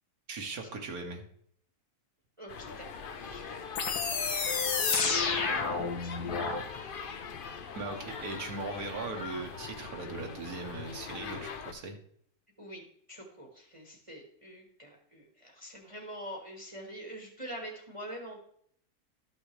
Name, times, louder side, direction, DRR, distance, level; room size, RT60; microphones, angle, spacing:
voice 1, 0.3-1.2 7.7-12.0, right 3 dB, 75° right, 3 dB, 1.7 m, -39 dB
voice 2, 2.4-6.6 12.6-12.8 13.1-18.4, equal, 20° right, 0 dB, 1.3 m, -46 dB
sound 1, 2.5-11.7, left 6 dB, 50° left, 0.6 m, -41 dB
sound 2, 3.8-6.6, left 5 dB, 85° left, 1.6 m, -30 dB
12.5 x 6.2 x 3.2 m, 0.64 s
omnidirectional pair, 1.6 m